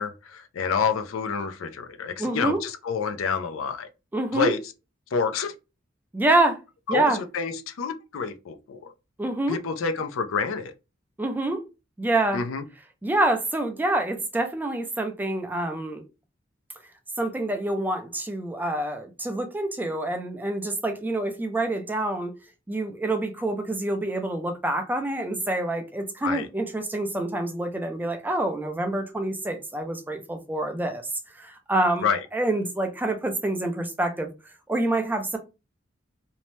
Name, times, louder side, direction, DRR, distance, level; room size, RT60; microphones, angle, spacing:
voice 1, 0.0-3.9 4.3-4.6 5.1-5.5 6.9-8.9 9.5-10.7 12.3-12.6 26.2-26.5 32.0-32.2, left 5 dB, 90° left, 0.4 m, -28 dB
voice 2, 2.2-2.6 4.1-4.5 6.1-6.6 6.9-7.2 9.2-9.6 11.2-11.6 12.0-12.4 13.0-16.0 17.2-22.3 22.7-31.0 31.4-32.1 32.3-34.3 34.7-35.4, right 2 dB, 10° right, 0.4 m, -26 dB
2.7 x 2.1 x 3.0 m
head